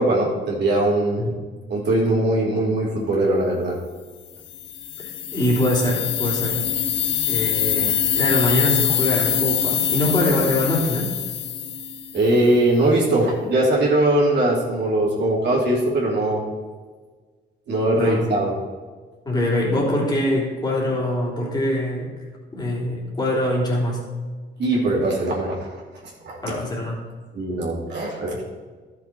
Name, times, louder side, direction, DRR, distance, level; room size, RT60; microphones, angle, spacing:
voice 1, 0.0-1.2 1.7-3.8 12.1-16.4 17.7-18.5 24.6-25.8 26.2-26.4 27.3-28.4, right 1 dB, 60° right, -4 dB, 2.6 m, -20 dB
sound 1, 4.5-12.4, left 9 dB, 70° left, 0.8 m, -24 dB
voice 2, 5.0-6.6 7.3-11.1 17.9-18.3 19.2-22.1 22.5-24.1 26.4-27.0, left 1 dB, 20° left, -4 dB, 3.2 m, -23 dB
12.0 x 6.6 x 4.5 m, 1.4 s
cardioid pair, 90°, 20 cm